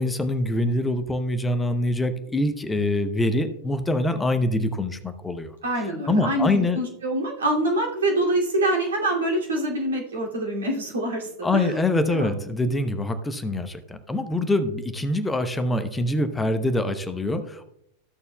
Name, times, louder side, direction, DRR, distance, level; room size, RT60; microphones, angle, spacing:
voice 1, 0.0-5.5 6.1-6.8 11.4-17.6, left 1 dB, 10° left, 9 dB, 0.8 m, -24 dB
voice 2, 5.6-11.8 12.1-12.3, right 1 dB, 65° right, -1 dB, 2.5 m, -25 dB
14.5 x 6.7 x 2.3 m, 0.77 s
figure-of-eight pair, 90°, 0 cm